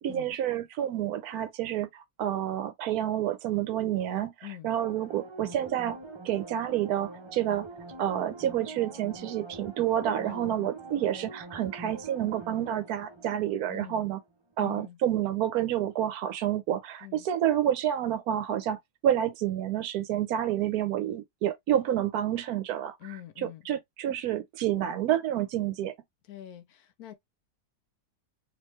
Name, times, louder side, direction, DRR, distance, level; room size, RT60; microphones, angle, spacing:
voice 1, 0.0-4.3 4.6-6.0 6.2-7.7 8.0-14.2 14.6-23.0 23.4-25.9, right 11 dB, 70° right, 1.0 m, -29 dB
sound 1, 4.8-14.2 14.5-14.6, right 2 dB, 25° right, 0.7 m, -44 dB
voice 2, 10.2-10.7 13.7-14.1 14.6-15.0 17.0-17.3 23.0-23.6 26.3-27.1, left 13 dB, 70° left, 1.1 m, -44 dB
3.1 x 2.9 x 3.1 m
omnidirectional pair, 1.7 m